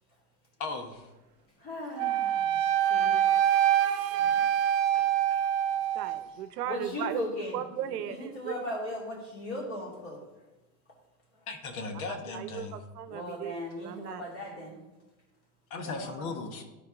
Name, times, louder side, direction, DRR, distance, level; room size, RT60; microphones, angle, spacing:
voice 1, 0.6-1.1 11.5-12.8 15.7-16.6, left 3 dB, 65° left, 5 dB, 1.3 m, -37 dB
voice 2, 1.6-2.6 2.9-3.2 4.2-4.4 4.9-5.0 5.3-5.4 6.7-7.6 8.0-10.2 13.1-14.8 15.8-16.1, left 1 dB, 30° left, -3 dB, 2.6 m, -38 dB
Wind instrument woodwind instrument, 2.0-6.3, right 10 dB, 40° right, 0.5 m, -25 dB
voice 3, 5.9-7.2 7.5-8.6 12.1-14.2, right 10 dB, 90° right, 12 dB, 0.8 m, -37 dB
12.0 x 4.6 x 3.7 m, 1.0 s
supercardioid pair, 145°, 46 cm